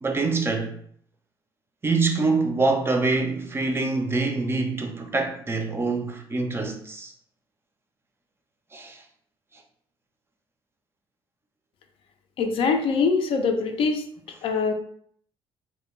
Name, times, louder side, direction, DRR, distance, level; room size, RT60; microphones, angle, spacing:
voice 1, 0.0-0.7 1.8-7.1 8.7-9.0, right 3 dB, 25° right, 0.4 m, -25 dB
voice 2, 12.4-14.0 14.4-14.7, left 4 dB, 65° left, 0.4 m, -23 dB
2.2 x 2.1 x 3.0 m
cardioid pair, 100°, 10 cm